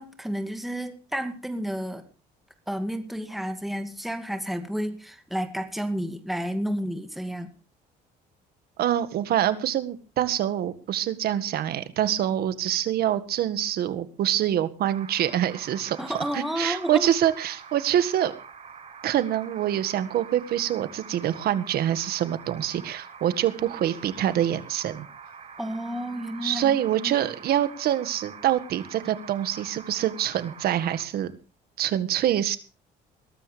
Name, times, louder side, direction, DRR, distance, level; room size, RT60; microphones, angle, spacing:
voice 1, 0.0-2.0 2.7-7.5 16.0-17.1 25.6-26.8 27.0-27.2, equal, ahead, 7 dB, 2.2 m, -31 dB
voice 2, 8.8-18.3 19.0-25.1 26.4-31.3 31.8-32.6, right 11 dB, 65° right, 13 dB, 1.8 m, -25 dB
sound 1, 14.9-31.0, right 6 dB, 40° right, 6.4 m, -45 dB
21.5 x 13.0 x 3.4 m, 0.35 s
cardioid pair, 110°, 17 cm